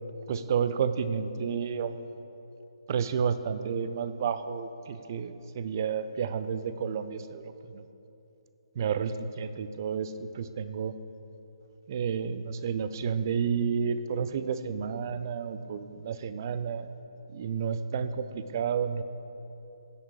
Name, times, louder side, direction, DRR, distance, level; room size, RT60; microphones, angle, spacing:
voice 1, 0.3-2.1 2.9-7.8 8.8-10.9 11.9-16.9 17.3-19.0, right 7 dB, 35° right, 12 dB, 0.5 m, -31 dB
16.0 x 5.3 x 4.8 m, 2.9 s
figure-of-eight pair, 140°, 3 cm